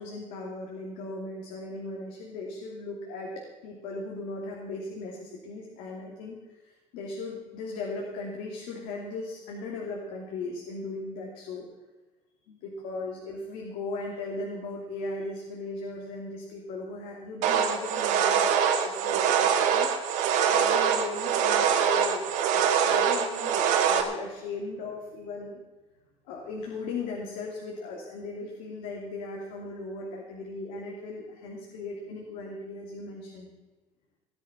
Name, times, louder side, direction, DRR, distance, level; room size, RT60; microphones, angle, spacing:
voice 1, 0.0-6.3 6.6-11.7 12.5-19.9 20.5-25.6 26.2-33.5, left 3 dB, 85° left, -1 dB, 2.8 m, -37 dB
sound 1, 17.4-24.0, right 8 dB, 80° right, 1.9 m, -24 dB
17.5 x 10.5 x 5.9 m, 1.2 s
cardioid pair, 165°, 13 cm